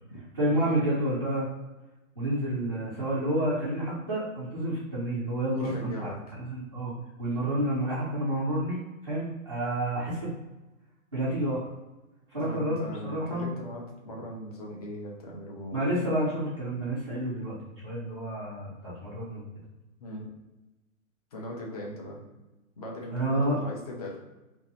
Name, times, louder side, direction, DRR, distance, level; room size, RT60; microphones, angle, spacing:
voice 1, 0.4-1.5 2.2-6.1 6.4-10.3 11.1-11.6 12.3-12.8 13.0-13.5 15.7-17.6 17.8-19.4 23.1-23.6, right 1 dB, 20° right, -11 dB, 0.4 m, -29 dB
voice 2, 5.5-6.4 12.4-15.9 20.0-20.3 21.3-22.2 22.8-24.2, left 1 dB, 30° left, -2 dB, 0.6 m, -39 dB
2.7 x 2.6 x 3.9 m, 1.1 s
hypercardioid pair, 165°, 41 cm